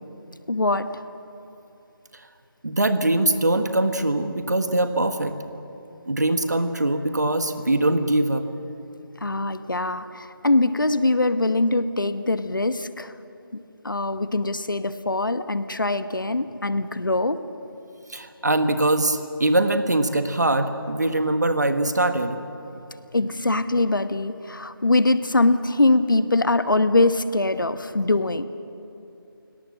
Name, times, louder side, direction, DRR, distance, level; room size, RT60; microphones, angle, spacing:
voice 1, 0.5-1.0 9.2-13.1 13.5-17.4 22.7-28.5, left 2 dB, 60° left, 12 dB, 1.1 m, -23 dB
voice 2, 2.6-5.3 6.1-8.4 18.1-22.4, right 1 dB, 45° right, 9 dB, 1.5 m, -22 dB
29.5 x 18.0 x 7.6 m, 2.8 s
figure-of-eight pair, 175°, 12 cm